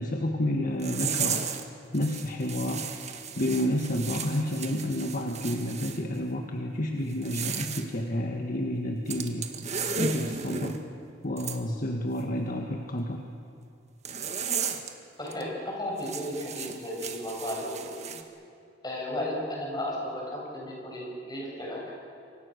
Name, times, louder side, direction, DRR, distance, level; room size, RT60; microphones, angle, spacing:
voice 1, 0.0-1.4 1.9-2.9 3.3-9.5 10.0-10.8 11.2-13.3, left 1 dB, 50° left, 2 dB, 1.7 m, -30 dB
sound 1, 0.8-1.6 1.9-6.0 7.1-7.8 9.1-10.8 11.4-11.6 14.0-14.9 15.3-15.4 16.0-18.2, right 6 dB, 40° right, 1.7 m, -34 dB
voice 2, 15.2-18.1 18.8-21.8, left 1 dB, 25° left, -2 dB, 7.8 m, -34 dB
28.0 x 24.5 x 6.7 m, 2.5 s
head